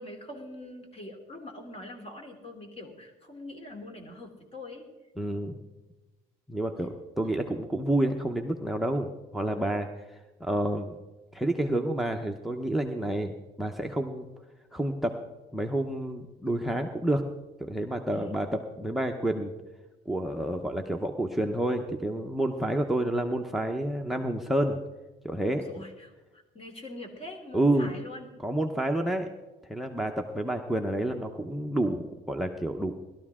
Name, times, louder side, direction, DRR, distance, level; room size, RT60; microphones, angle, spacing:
voice 1, 0.0-4.9 7.2-7.5 18.1-18.4 25.6-28.3, left 1 dB, 35° left, 4 dB, 3.1 m, -43 dB
voice 2, 5.2-5.6 6.5-11.0 11.3-14.3 14.7-15.2 15.5-17.2 17.6-18.5 18.8-19.5 20.1-24.8 25.2-25.6 27.5-27.9 28.4-29.3 29.7-32.9, right 1 dB, ahead, 6 dB, 0.8 m, -29 dB
19.5 x 13.0 x 3.7 m, 1.1 s
cardioid pair, 110°, 17 cm